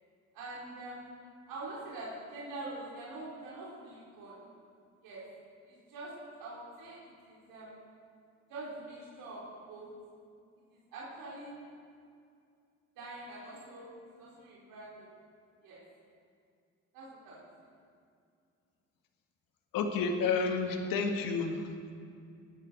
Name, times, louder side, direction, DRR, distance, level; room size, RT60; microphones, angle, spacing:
voice 1, 0.3-1.1 1.5-4.3 5.0-5.2 5.6-6.1 6.4-7.8 8.5-9.4 9.7-9.9 10.7-11.5 13.0-13.9 14.2-15.1 15.6-15.8 16.9-17.4, right 2 dB, 70° right, -6 dB, 4.6 m, -44 dB
voice 2, 19.7-21.6, left 4 dB, 65° left, 5 dB, 2.0 m, -30 dB
20.0 x 11.5 x 4.7 m, 2.4 s
hypercardioid pair, 55°, 37 cm